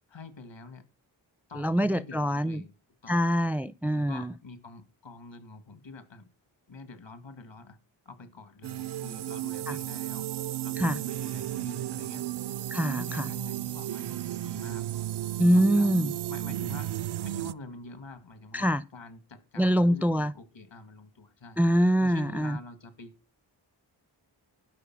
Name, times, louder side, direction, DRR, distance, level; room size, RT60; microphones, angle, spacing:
voice 1, 0.1-0.9 1.5-2.7 3.0-3.2 3.8-6.3 6.7-7.8 8.1-10.3 10.6-12.3 12.8-14.9 15.5-15.9 16.3-17.0 17.2-21.6 22.0-23.2, left 3 dB, 70° left, 2.0 m, -46 dB
voice 2, 1.5-2.6 3.1-4.3 9.7-9.8 10.8-11.0 12.7-13.3 15.4-16.1 18.5-18.8 19.6-20.3 21.6-22.6, equal, 5° right, 0.5 m, -24 dB
sound 1, 8.6-17.5, right 13 dB, 60° right, 0.5 m, -34 dB
12.0 x 5.4 x 6.0 m
cardioid pair, 45°, 47 cm